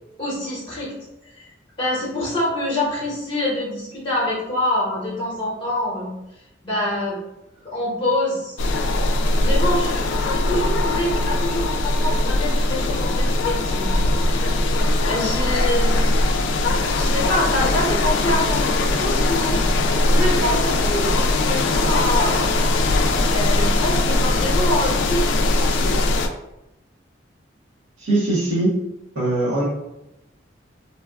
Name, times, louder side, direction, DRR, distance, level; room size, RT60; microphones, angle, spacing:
voice 1, 0.2-0.9 1.4-1.5 1.8-6.2 6.6-7.2 7.6-8.6 9.3-13.9 14.2-16.2 16.6-19.6 20.1-22.5 23.3-26.1, left 1 dB, 25° left, -7 dB, 0.9 m, -26 dB
sound 1, 8.6-26.3, left 2 dB, 75° left, 0.3 m, -20 dB
voice 2, 28.0-28.7 29.1-29.7, right 2 dB, 80° right, -8 dB, 1.0 m, -21 dB
3.1 x 2.3 x 2.3 m, 0.91 s
head